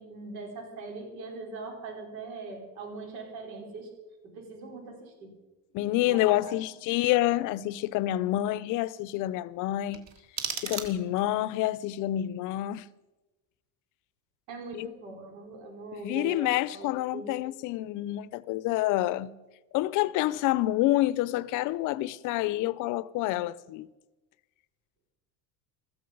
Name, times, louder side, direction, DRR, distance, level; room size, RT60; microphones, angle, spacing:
voice 1, 0.0-3.9 4.2-5.3 6.1-6.5 14.5-17.3, right 3 dB, 85° right, 5.1 m, -41 dB
voice 2, 5.7-10.1 10.6-12.8 14.7-14.9 15.9-19.4 19.7-23.9, left 15 dB, 50° left, 0.6 m, -28 dB
sound 1, 9.9-11.4, right 7 dB, 40° right, 2.2 m, -36 dB
15.5 x 14.0 x 5.4 m
cardioid pair, 150°, 41 cm